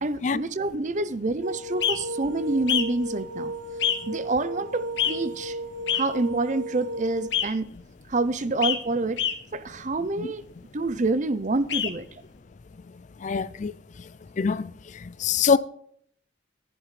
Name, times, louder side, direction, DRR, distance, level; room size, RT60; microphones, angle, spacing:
voice 1, 0.0-3.5 4.1-5.6 5.9-7.7 8.1-9.2 9.5-10.4 10.7-12.0, right 2 dB, 40° right, 0.6 m, -27 dB
sound 1, 1.4-7.3, right 1 dB, 80° right, 1.0 m, -35 dB
sound 2, 1.8-2.0 2.7-2.8 3.8-4.0 5.0-5.1 5.9-6.0 7.3-7.5 8.6-8.8 9.2-9.3 11.7-11.9, left 9 dB, 70° left, 1.5 m, -24 dB
voice 2, 13.2-13.7 14.4-14.7 15.2-15.6, left 6 dB, 40° left, 0.4 m, -23 dB
19.0 x 11.0 x 3.3 m
head